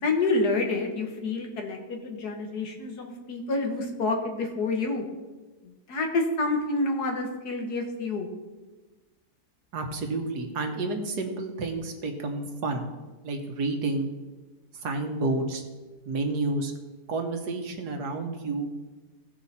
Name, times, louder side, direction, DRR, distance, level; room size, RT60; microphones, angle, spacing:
voice 1, 0.0-5.0 5.9-8.3, left 3 dB, 75° left, 3 dB, 2.0 m, -28 dB
voice 2, 9.7-12.9 13.2-14.1 14.8-15.6 16.1-16.7 17.1-18.7, right 3 dB, 80° right, 4 dB, 1.7 m, -30 dB
17.0 x 5.7 x 4.2 m, 1.2 s
omnidirectional pair, 1.7 m